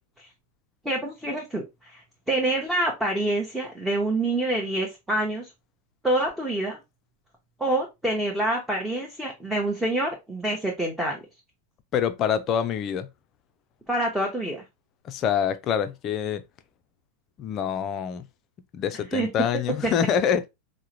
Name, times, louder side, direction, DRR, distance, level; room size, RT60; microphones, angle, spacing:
voice 1, 0.8-2.0 2.3-5.5 6.0-6.8 7.6-11.2 13.9-14.6 19.1-19.3 19.8-19.9, right 1 dB, 5° right, 0.8 m, -26 dB
voice 2, 11.9-13.1 15.0-16.4 17.4-18.2 18.7-20.5, left 8 dB, 35° left, 0.4 m, -25 dB
4.7 x 2.1 x 2.7 m
figure-of-eight pair, 90°, 0 cm